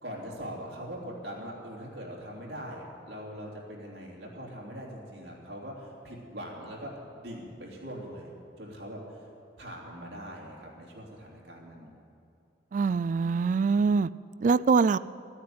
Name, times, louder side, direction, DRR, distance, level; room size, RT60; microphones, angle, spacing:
voice 1, 0.0-8.3 8.6-9.3 9.6-11.9, equal, 60° right, -2 dB, 3.3 m, -42 dB
voice 2, 12.7-14.1 14.4-15.0, right 4 dB, 45° right, 16 dB, 0.3 m, -23 dB
15.0 x 9.8 x 9.4 m, 2.5 s
head